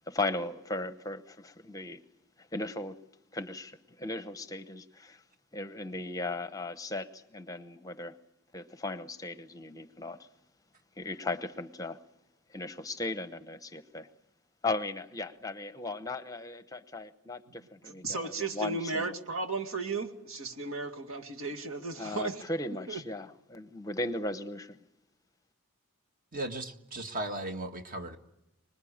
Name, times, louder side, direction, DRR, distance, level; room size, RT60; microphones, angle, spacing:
voice 1, 0.1-2.0 2.4-3.0 3.3-5.2 5.5-8.2 8.5-10.3 11.0-12.0 12.5-14.1 14.6-19.1 21.9-24.8, left 2 dB, 15° left, 11 dB, 0.8 m, -37 dB
voice 2, 17.8-22.4 22.9-23.0, right 3 dB, 70° right, 4 dB, 2.2 m, -35 dB
voice 3, 26.3-28.2, right 1 dB, 40° right, 6 dB, 1.8 m, -36 dB
25.0 x 20.5 x 8.7 m, 0.88 s
head